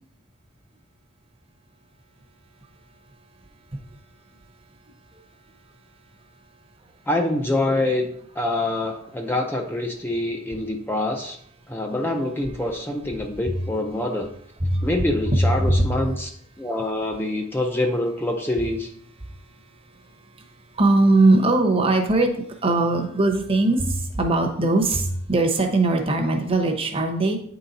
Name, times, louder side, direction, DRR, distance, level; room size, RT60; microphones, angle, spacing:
voice 1, 7.1-11.4 11.7-14.3 14.8-16.3 16.6-18.9, left 1 dB, 10° left, 2 dB, 0.5 m, -25 dB
voice 2, 15.3-15.8 20.7-27.4, right 2 dB, 30° right, 4 dB, 0.8 m, -20 dB
9.1 x 4.0 x 4.0 m, 0.68 s
head